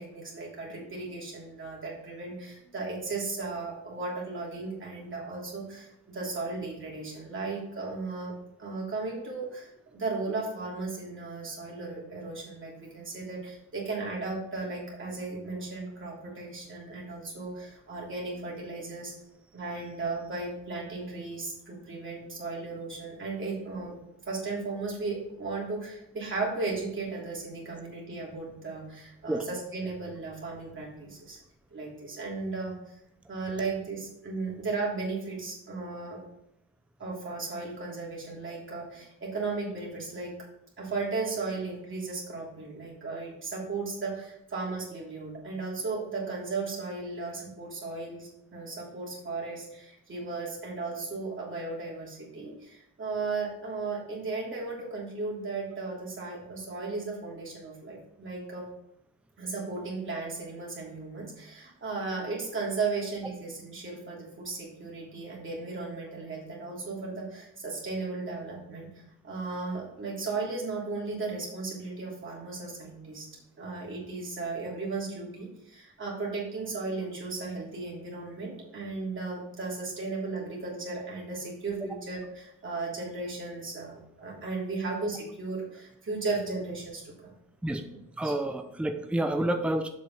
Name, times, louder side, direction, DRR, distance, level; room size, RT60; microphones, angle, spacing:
voice 1, 0.0-8.3 8.6-19.1 19.5-24.0 24.3-31.4 31.7-33.0 33.3-36.2 37.0-40.3 40.8-58.6 59.4-73.3 73.6-87.3 87.9-88.0 88.2-88.3, right 3 dB, 40° right, -4 dB, 3.0 m, -35 dB
voice 2, 88.2-89.9, right 1 dB, 5° right, 6 dB, 0.7 m, -29 dB
7.6 x 5.3 x 5.5 m, 0.80 s
cardioid pair, 90°, 30 cm